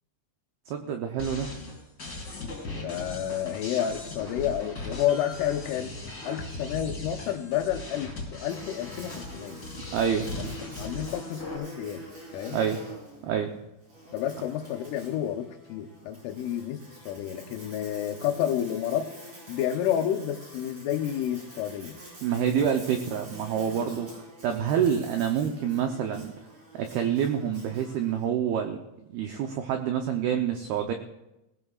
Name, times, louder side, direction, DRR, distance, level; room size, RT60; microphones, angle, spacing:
voice 1, 0.7-1.5 9.9-10.3 12.5-12.8 13.2-13.5 22.2-24.1 24.4-26.3 26.7-28.8 29.1-30.9, right 8 dB, 85° right, 4 dB, 2.2 m, -27 dB
sound 1, 1.2-11.6, left 2 dB, 20° left, 5.1 m, -39 dB
voice 2, 2.8-5.9 6.2-9.6 10.3-12.0 12.3-12.6 14.1-19.1 19.5-22.0 22.5-22.7, left 10 dB, 85° left, 5 dB, 3.4 m, -30 dB
Buzz, 8.5-28.3, equal, 35° right, 6.5 m, -46 dB
20.0 x 17.5 x 2.4 m, 0.91 s
omnidirectional pair, 5.6 m